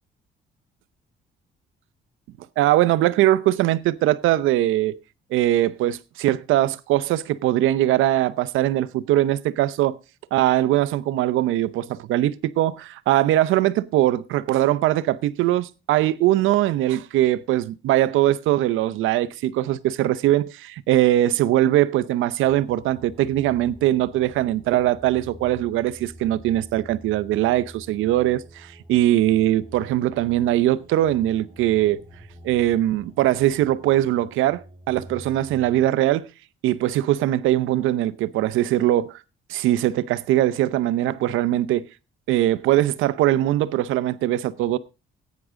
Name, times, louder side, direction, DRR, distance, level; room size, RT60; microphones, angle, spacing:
voice 1, 2.6-5.0 5.3-10.0 10.3-32.0 32.4-34.6 34.9-36.3 36.6-39.1 39.5-41.9 42.3-44.8, right 14 dB, 90° right, 0.7 m, -21 dB
sound 1, 22.4-35.8, right 1 dB, 25° right, 1.9 m, -46 dB
14.5 x 9.3 x 3.7 m
cardioid pair, 90°, 20 cm